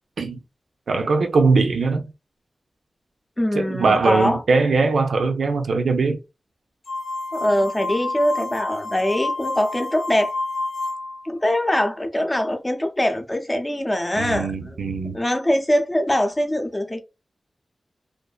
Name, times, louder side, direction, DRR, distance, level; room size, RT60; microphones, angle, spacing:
voice 1, 0.9-2.0 3.5-6.2 14.2-15.2, right 4 dB, 90° right, 0.5 m, -20 dB
voice 2, 3.4-4.4 7.3-10.4 11.2-14.7 15.1-17.0, left 1 dB, 15° left, 0.5 m, -22 dB
sound 1, 6.9-11.3, left 2 dB, 65° left, 0.5 m, -29 dB
2.5 x 2.5 x 2.2 m
wide cardioid pair, 90°, 0 cm